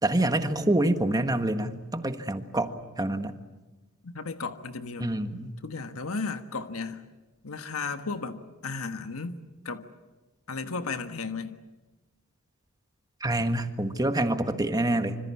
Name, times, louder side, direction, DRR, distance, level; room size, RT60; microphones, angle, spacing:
voice 1, 0.0-3.4 5.0-5.5 13.2-15.2, right 1 dB, 20° right, 1.6 m, -26 dB
voice 2, 4.0-5.1 5.4-7.0 7.4-9.4 9.6-9.9 10.5-11.6, left 4 dB, 85° left, 1.5 m, -34 dB
26.0 x 26.0 x 8.6 m
head